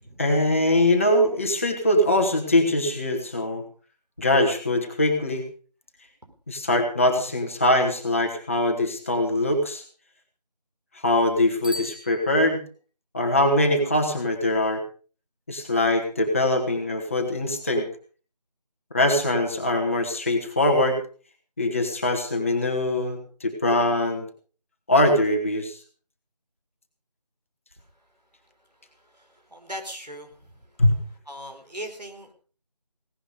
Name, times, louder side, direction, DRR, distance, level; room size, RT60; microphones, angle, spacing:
voice 1, 0.2-3.6 4.2-5.4 6.5-9.8 11.0-12.6 13.1-14.8 15.5-17.9 18.9-21.0 21.6-24.3 24.9-25.8 30.8-30.9, left 1 dB, 20° left, 2 dB, 1.8 m, -22 dB
Bicycle bell, 11.6-12.9, left 1 dB, 15° right, 0.8 m, -39 dB
voice 2, 29.5-30.3 31.3-32.3, equal, 75° right, 5 dB, 4.4 m, -38 dB
17.5 x 12.0 x 5.0 m, 0.40 s
figure-of-eight pair, 165°, 21 cm